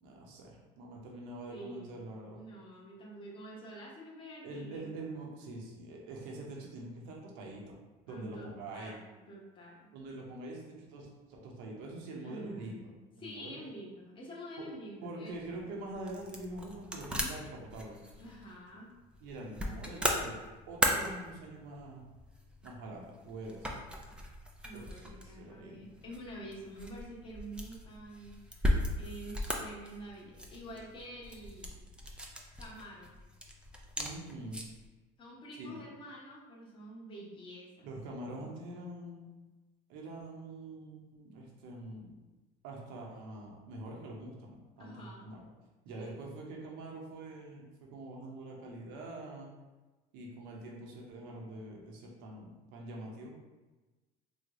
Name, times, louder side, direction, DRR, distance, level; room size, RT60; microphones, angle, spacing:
voice 1, 0.0-2.4 4.4-7.8 8.1-9.0 9.9-13.7 14.6-14.7 15.0-18.0 19.2-20.4 20.7-22.0 22.6-23.8 24.7-26.0 34.0-34.6 35.6-35.8 37.8-39.3 39.9-42.1 42.6-45.5 45.8-49.5 50.1-53.4, right 2 dB, 80° right, -1 dB, 0.7 m, -45 dB
voice 2, 1.5-4.9 8.1-9.9 12.2-12.7 13.2-15.6 18.2-18.9 20.9-21.2 24.6-31.8 32.6-33.1 35.2-37.9 38.2-38.5 44.8-45.3 46.0-46.2, right 1 dB, 30° left, -4 dB, 0.9 m, -48 dB
sound 1, 15.3-34.9, equal, 5° right, 0.3 m, -38 dB
3.2 x 2.1 x 3.6 m, 1.2 s
cardioid pair, 125°, 18 cm